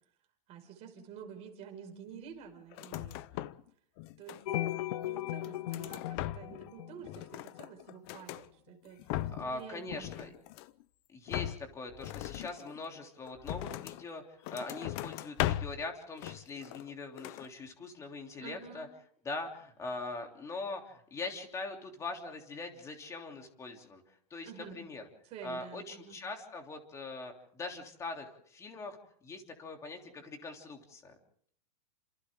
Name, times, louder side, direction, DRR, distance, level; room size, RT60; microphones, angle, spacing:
voice 1, 0.5-3.5 4.2-4.7 5.0-9.0 9.3-10.4 18.4-18.8 24.4-24.8 25.2-26.2, right 8 dB, 30° right, 3 dB, 5.5 m, -49 dB
sound 1, 2.7-3.7 4.0-4.7 5.2-6.7 7.0-8.5 8.9-9.6 9.9-10.8 11.3-14.1 14.4-15.9 16.2-16.9 17.2-17.5, left 14 dB, 40° left, 0.8 m, -39 dB
sound 2, 4.5-7.6, left 14 dB, 65° left, 0.8 m, -37 dB
voice 2, 9.4-10.3 11.1-18.9 19.2-24.0 24.3-25.1 25.4-29.0 29.2-31.1, left 3 dB, 15° left, 3 dB, 3.2 m, -42 dB
30.0 x 27.5 x 3.7 m, 0.64 s
supercardioid pair, 155°, 21 cm